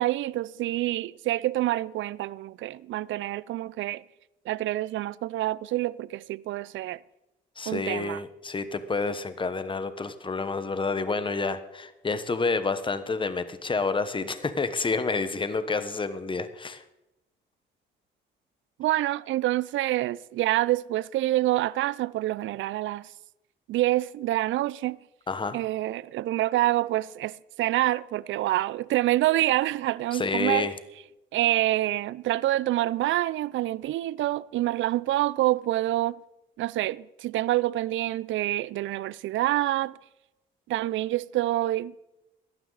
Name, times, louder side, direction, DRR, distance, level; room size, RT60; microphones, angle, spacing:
voice 1, 0.0-4.0 4.5-7.0 7.7-8.2 18.8-23.1 23.7-25.0 25.5-30.7 31.3-36.2 36.6-40.0 40.7-41.9, right 15 dB, 75° right, 0.5 m, -27 dB
voice 2, 7.6-16.8 25.3-25.6 30.1-30.7, left 4 dB, 25° left, 1.2 m, -29 dB
17.0 x 12.5 x 4.0 m
cardioid pair, 90°, 20 cm